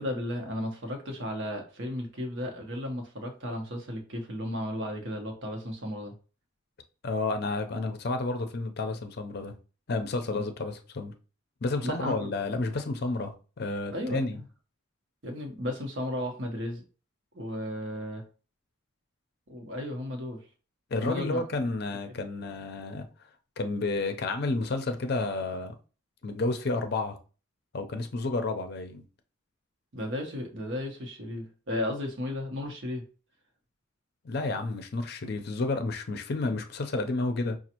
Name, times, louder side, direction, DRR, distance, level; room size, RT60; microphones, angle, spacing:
voice 1, 0.0-6.1 10.3-10.4 11.8-12.3 13.9-14.4 15.2-16.8 17.3-18.2 19.5-20.4 21.0-21.4 29.9-33.0, left 1 dB, 65° right, 1.0 m, -34 dB
voice 2, 7.0-9.5 9.9-11.1 11.6-14.4 20.9-23.1 23.6-25.7 26.2-27.2 27.7-29.0 34.2-37.6, left 3 dB, 50° left, 0.5 m, -31 dB
5.1 x 2.4 x 2.9 m
head